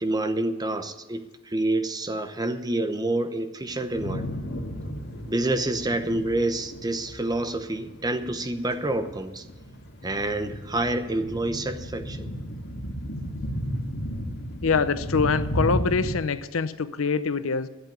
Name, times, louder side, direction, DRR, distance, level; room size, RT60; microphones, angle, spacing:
voice 1, 0.0-4.3 5.3-9.4 10.0-12.3, right 2 dB, 20° right, 9 dB, 0.9 m, -28 dB
sound 1, 3.7-16.1, equal, 55° left, 2.0 m, -34 dB
voice 2, 14.6-17.7, left 5 dB, 90° left, 13 dB, 0.7 m, -24 dB
12.0 x 8.1 x 9.2 m, 1.2 s
head